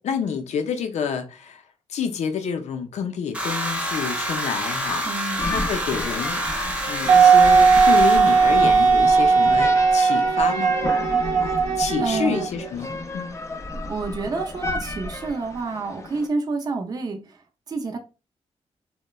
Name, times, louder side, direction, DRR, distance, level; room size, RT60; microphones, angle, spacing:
voice 1, 0.0-1.6 1.9-10.7 11.8-13.4, left 7 dB, 80° left, 0.5 m, -29 dB
sound 1, 3.3-9.5, equal, 10° right, 0.7 m, -28 dB
voice 2, 5.0-5.5 12.0-12.5 13.9-17.4 17.7-18.0, right 3 dB, 35° right, 0.4 m, -28 dB
sound 2, 5.4-16.3, left 1 dB, 25° left, 0.4 m, -32 dB
Wind instrument woodwind instrument, 7.1-12.7, right 5 dB, 75° right, 0.7 m, -17 dB
2.9 x 2.1 x 2.2 m
cardioid pair, 100°, 11 cm